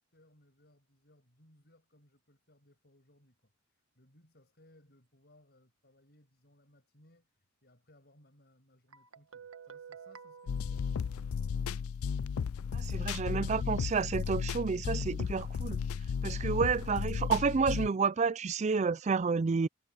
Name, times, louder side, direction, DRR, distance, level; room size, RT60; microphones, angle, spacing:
voice 1, 0.0-11.9, left 1 dB, 45° left, 6.9 m, -65 dB
Guitar, 8.9-11.7, right 6 dB, 70° right, 1.7 m, -52 dB
sound 1, 10.5-17.9, left 6 dB, 80° left, 0.4 m, -34 dB
voice 2, 12.7-15.8 16.2-19.7, right 5 dB, 30° right, 0.3 m, -30 dB
head